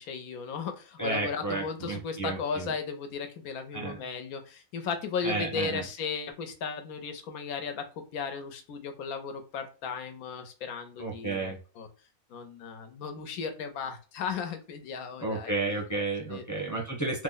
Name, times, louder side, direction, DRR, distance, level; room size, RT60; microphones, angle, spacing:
voice 1, 0.0-7.8 8.1-11.9 12.3-15.5 16.3-16.8, left 6 dB, 85° left, 6 dB, 1.2 m, -36 dB
voice 2, 1.0-2.7 3.7-4.0 5.2-5.8 11.0-11.6 15.2-17.2, right 3 dB, 20° left, -2 dB, 0.6 m, -32 dB
3.2 x 2.1 x 3.8 m, 0.35 s
omnidirectional pair, 1.5 m